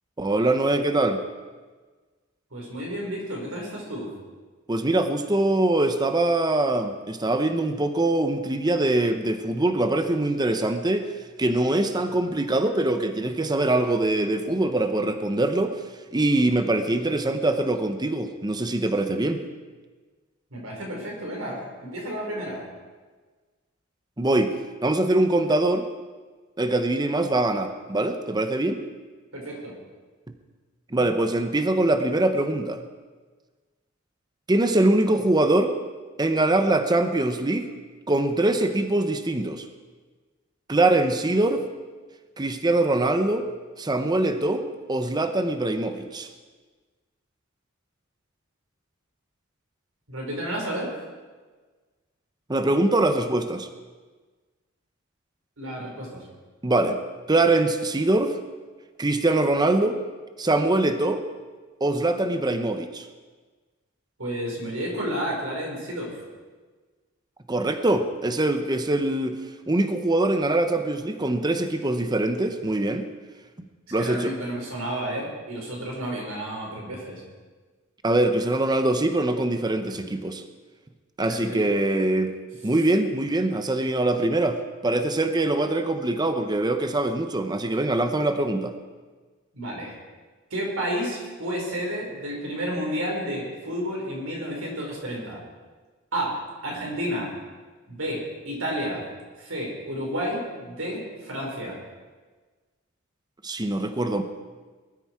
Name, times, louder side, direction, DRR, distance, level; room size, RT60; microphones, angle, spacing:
voice 1, 0.2-1.2 4.7-11.1 11.4-15.8 16.1-19.4 24.2-24.5 24.8-25.9 26.6-28.8 30.9-32.8 34.5-35.7 36.2-37.7 38.1-39.7 40.7-41.6 42.4-43.4 43.8-46.3 52.5-53.7 56.6-57.0 57.3-58.4 59.0-60.0 60.4-61.2 61.8-63.1 67.5-69.4 69.7-73.1 73.9-74.3 78.0-80.4 81.2-82.3 82.6-84.6 84.8-88.7 103.4-104.2, right 2 dB, 20° right, 8 dB, 0.8 m, -23 dB
voice 2, 2.5-4.1 20.5-22.6 29.3-29.8 50.1-50.9 55.6-56.3 64.2-66.2 73.9-77.2 79.9-80.1 81.2-81.7 89.5-89.9 90.5-95.4 96.1-96.4 96.6-97.3 97.9-99.0 99.4-101.8, equal, 80° right, -1 dB, 5.0 m, -31 dB
20.0 x 13.0 x 4.7 m, 1.4 s
head